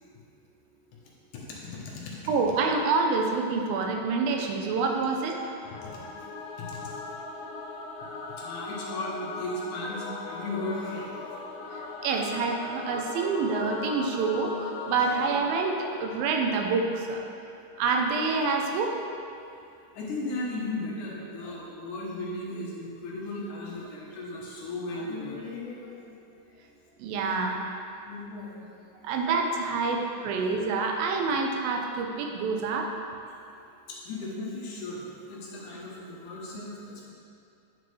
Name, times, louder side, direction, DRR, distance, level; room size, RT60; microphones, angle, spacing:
voice 1, 1.3-2.2 5.7-6.0 6.6-6.9 8.3-11.2 12.0-12.3 14.9-15.1 19.9-26.2 28.0-28.7 33.9-37.1, left 2 dB, 70° left, -4 dB, 2.3 m, -36 dB
voice 2, 2.3-5.5 12.0-17.3 17.8-19.0 27.0-27.7 29.0-32.9, right 4 dB, 90° right, 2 dB, 2.5 m, -27 dB
Singing / Musical instrument, 5.5-16.8, left 3 dB, 85° left, 2.6 m, -39 dB
9.4 x 6.2 x 3.2 m, 2.5 s
omnidirectional pair, 4.1 m